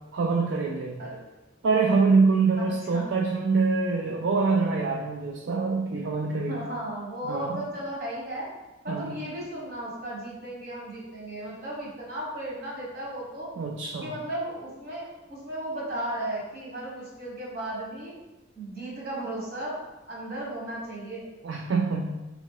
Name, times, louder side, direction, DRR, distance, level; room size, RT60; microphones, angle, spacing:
voice 1, 0.1-1.0 1.6-6.7 7.2-7.6 8.9-9.2 13.6-14.1 21.4-22.1, right 4 dB, 75° right, 0 dB, 0.4 m, -25 dB
voice 2, 2.6-3.0 6.5-8.5 8.8-13.5 14.0-18.2 18.5-19.8 20.1-21.3, right 1 dB, 55° right, -5 dB, 1.4 m, -35 dB
3.6 x 3.1 x 3.7 m, 1.0 s
head